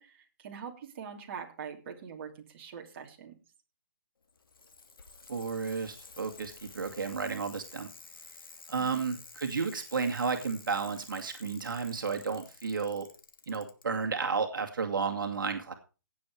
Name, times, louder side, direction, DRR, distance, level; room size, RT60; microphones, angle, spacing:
voice 1, 0.0-3.4 8.9-9.0, right 7 dB, 35° right, 1 dB, 2.9 m, -43 dB
Bicycle, 4.2-13.8 14.9-15.0, left 4 dB, 90° left, 2.6 m, -52 dB
voice 2, 5.3-7.9 8.7-13.1 13.5-15.7, right 5 dB, 70° right, 4 dB, 2.2 m, -32 dB
17.0 x 7.6 x 4.7 m, 0.33 s
hypercardioid pair, 160°, 11 cm